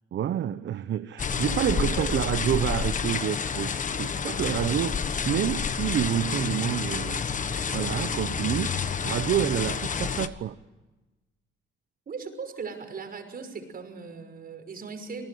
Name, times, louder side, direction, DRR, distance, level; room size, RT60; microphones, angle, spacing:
voice 1, 0.1-7.2 7.7-8.7 9.0-10.6, right 11 dB, 65° right, 0.9 m, -28 dB
sound 1, 1.2-10.3, left 6 dB, 40° left, 1.3 m, -29 dB
voice 2, 1.8-2.2 12.1-15.3, right 5 dB, 50° right, 5.7 m, -38 dB
27.5 x 19.0 x 9.4 m
cardioid pair, 90°, 20 cm